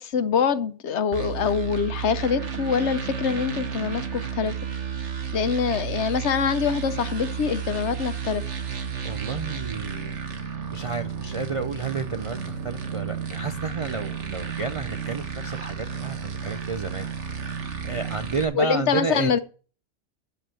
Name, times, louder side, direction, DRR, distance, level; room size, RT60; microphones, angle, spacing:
voice 1, 0.0-4.5 5.3-8.4 18.6-19.4, left 6 dB, 70° left, 1.1 m, -24 dB
sound 1, 1.1-18.4, right 7 dB, 75° right, 1.5 m, -32 dB
voice 2, 9.0-17.4 17.8-19.4, right 4 dB, 50° right, 0.4 m, -31 dB
7.8 x 6.7 x 7.6 m
omnidirectional pair, 1.2 m